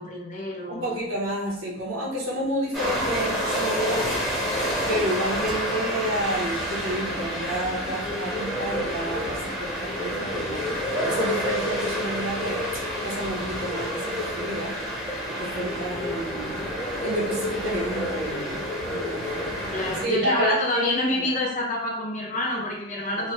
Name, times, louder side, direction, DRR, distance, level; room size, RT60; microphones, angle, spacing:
voice 1, 0.0-0.9 19.7-23.3, left 1 dB, 40° left, -1 dB, 0.6 m, -27 dB
voice 2, 0.7-4.5 4.9-12.6 13.0-14.7 15.3-16.6 17.0-19.5 20.0-21.3 23.2-23.3, right 1 dB, 70° right, -5 dB, 0.7 m, -30 dB
sound 1, 2.7-20.0, equal, ahead, 1.0 m, -29 dB
3.0 x 2.1 x 2.8 m, 0.75 s
head